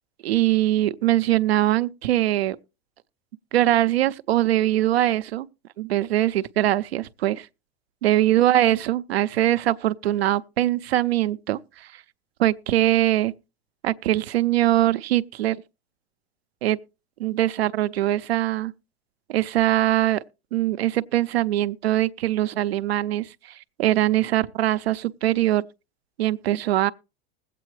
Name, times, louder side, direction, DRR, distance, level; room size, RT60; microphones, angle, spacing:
voice 1, 0.2-2.6 3.5-5.5 5.8-7.5 8.0-11.9 12.4-13.3 13.8-15.6 16.6-16.8 17.2-18.7 19.3-20.2 20.5-23.5 23.8-25.6 26.2-26.9, right 14 dB, 85° right, 0.6 m, -22 dB
20.5 x 8.4 x 3.1 m
hypercardioid pair, 100°, 30 cm